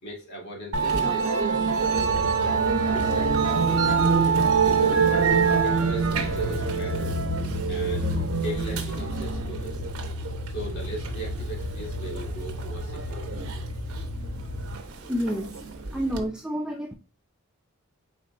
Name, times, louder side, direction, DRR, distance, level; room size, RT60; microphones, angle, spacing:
voice 1, 0.0-1.3 1.7-2.2 2.8-5.1 5.6-7.1 7.7-9.8 10.4-13.4, right 2 dB, 50° left, 1.9 m, -39 dB
Musical instrument, 0.7-16.2, right 5 dB, 75° right, 0.8 m, -25 dB
sound 1, 1.9-14.8, left 1 dB, 85° left, 1.0 m, -34 dB
voice 2, 15.0-15.6 15.9-16.9, equal, 5° right, 0.3 m, -29 dB
4.3 x 3.9 x 2.5 m
head